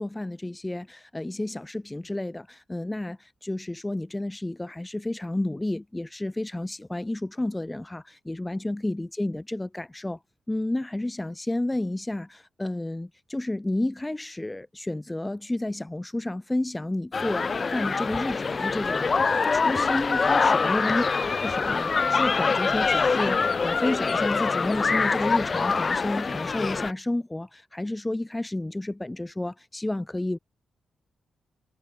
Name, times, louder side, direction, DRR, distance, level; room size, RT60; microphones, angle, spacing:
voice 1, 0.0-10.2 10.5-19.1 19.5-21.0 21.4-30.4, left 1 dB, 15° left, 2.4 m, -31 dB
sound 1, 17.1-26.9, left 4 dB, 45° left, 0.5 m, -24 dB
cardioid pair, 60°, 0 cm